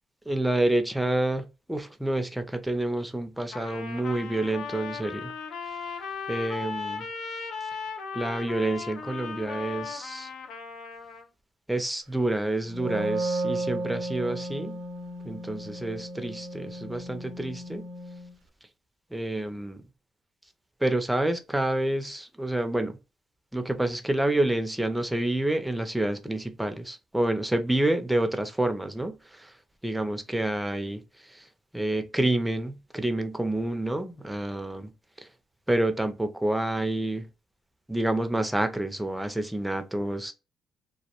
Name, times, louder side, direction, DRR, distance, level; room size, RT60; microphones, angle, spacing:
voice 1, 0.3-5.3 6.3-7.0 8.1-10.3 11.7-14.8 15.2-17.9 19.1-19.8 20.8-23.0 23.5-29.5 29.8-31.4 31.7-34.9 35.2-35.3 35.7-37.3 37.9-40.3, right 1 dB, 5° right, 0.5 m, -28 dB
Trumpet, 3.5-11.3, left 5 dB, 75° left, 0.4 m, -37 dB
Wind instrument woodwind instrument, 12.6-18.3, right 2 dB, 90° right, 0.5 m, -34 dB
2.2 x 2.1 x 2.9 m
cardioid pair, 90°, 0 cm